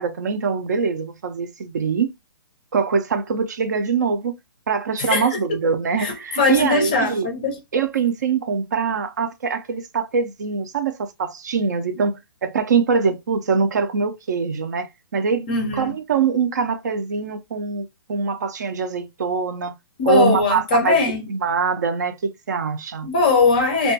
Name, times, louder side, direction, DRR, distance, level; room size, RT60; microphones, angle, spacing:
voice 1, 0.0-2.1 2.7-4.3 4.7-7.3 7.7-15.5 15.7-19.7 20.1-21.0 21.3-23.1, right 5 dB, 50° right, 0.4 m, -23 dB
voice 2, 5.0-5.6 6.0-7.6 15.5-15.9 20.0-21.3 23.0-23.9, left 3 dB, 20° left, 0.4 m, -20 dB
2.8 x 2.2 x 2.7 m
hypercardioid pair, 180°, 12 cm